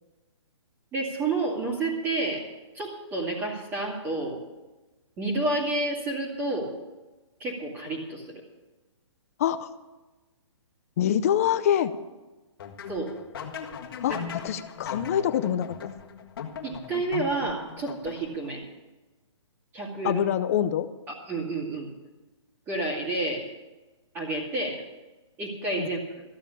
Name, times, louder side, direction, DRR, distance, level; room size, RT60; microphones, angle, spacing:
voice 1, 0.9-2.4 2.7-4.4 5.2-6.7 7.4-8.4 12.9-13.2 14.1-14.2 16.6-18.6 19.7-20.2 21.1-21.9 22.7-23.5 24.1-24.8 25.4-26.0, right 2 dB, 15° right, -9 dB, 2.5 m, -30 dB
voice 2, 11.0-11.9 14.0-14.2 14.4-15.7 20.0-20.9 25.8-25.9, left 10 dB, 30° left, 13 dB, 0.6 m, -25 dB
sound 1, 12.6-18.5, left 7 dB, 45° left, 1.7 m, -39 dB
14.5 x 7.3 x 9.9 m, 1.2 s
hypercardioid pair, 165°, 16 cm